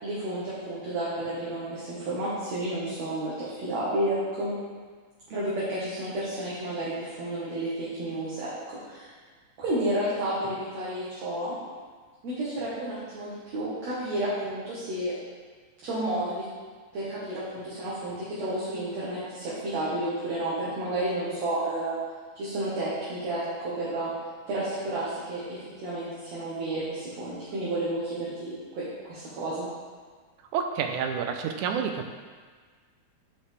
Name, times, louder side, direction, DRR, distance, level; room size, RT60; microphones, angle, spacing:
voice 1, 0.0-4.5 5.3-9.1 9.6-11.5 12.2-15.1 15.8-16.4 16.9-22.0 22.4-24.1 24.5-29.7, right 1 dB, 65° right, -9 dB, 2.7 m, -31 dB
voice 2, 30.5-32.1, right 7 dB, 85° right, 5 dB, 2.1 m, -29 dB
10.5 x 5.6 x 3.4 m, 1.5 s
omnidirectional pair, 3.4 m